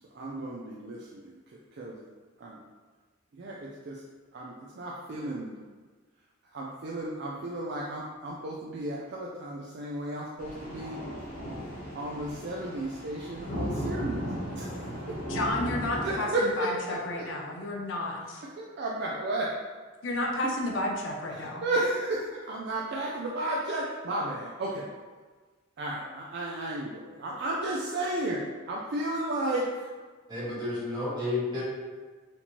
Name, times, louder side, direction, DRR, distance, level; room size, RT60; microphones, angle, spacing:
voice 1, 0.1-1.4 1.8-2.0 2.4-2.6 3.4-4.0 4.3-5.6 6.5-11.0 11.9-14.2 14.5-15.2 16.0-17.3 18.4-19.5 21.3-24.9 25.8-29.9, right 1 dB, 50° right, -3 dB, 0.3 m, -33 dB
sound 1, 10.4-16.2, equal, 40° left, 0.9 m, -36 dB
voice 2, 15.3-16.3 16.6-18.4 20.0-21.6, left 2 dB, 60° left, -1 dB, 0.5 m, -31 dB
voice 3, 30.3-31.6, left 2 dB, 20° right, -8 dB, 1.1 m, -31 dB
4.2 x 2.8 x 2.9 m, 1.4 s
head